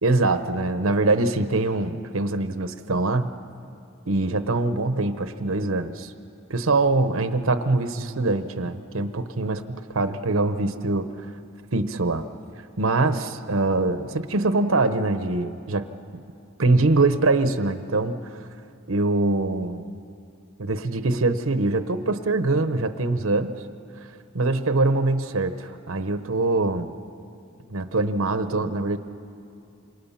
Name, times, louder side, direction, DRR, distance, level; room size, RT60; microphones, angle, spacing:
voice 1, 0.0-3.3 4.1-6.1 6.5-11.3 11.7-12.2 12.8-15.8 16.6-18.4 18.9-19.9 20.6-23.5 24.3-26.9 27.7-29.0, right 2 dB, 70° right, 10 dB, 0.9 m, -23 dB
27.0 x 27.0 x 5.8 m, 2.5 s
head